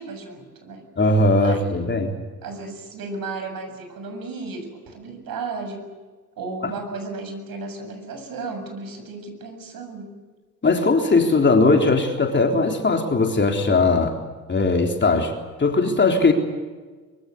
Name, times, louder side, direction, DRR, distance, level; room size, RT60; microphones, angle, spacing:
voice 1, 0.0-0.8 1.4-2.0 2.4-5.9 6.4-10.1, right 3 dB, 45° right, 6 dB, 7.4 m, -34 dB
voice 2, 1.0-2.1 10.6-14.1 14.5-15.3 15.6-16.3, left 3 dB, 20° left, 3 dB, 3.8 m, -19 dB
24.5 x 23.5 x 8.1 m, 1.4 s
hypercardioid pair, 65°, 48 cm